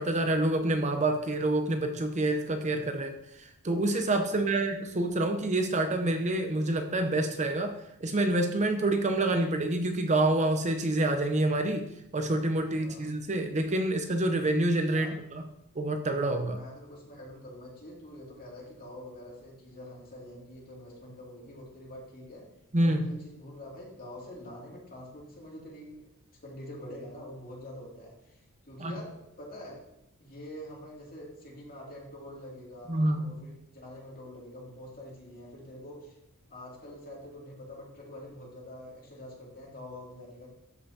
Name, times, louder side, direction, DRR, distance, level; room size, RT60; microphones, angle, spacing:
voice 1, 0.0-3.1 3.6-7.7 8.0-11.9 12.1-15.2 15.8-16.6 22.7-23.0 28.8-29.0 32.9-33.3, right 2 dB, 30° right, 6 dB, 0.6 m, -27 dB
voice 2, 4.3-4.6 12.8-13.0 14.9-15.1 16.5-22.4 22.8-26.1 26.4-29.8 30.2-36.2 36.5-40.5, left 1 dB, 40° left, -3 dB, 2.6 m, -46 dB
12.5 x 5.5 x 2.8 m, 0.80 s
head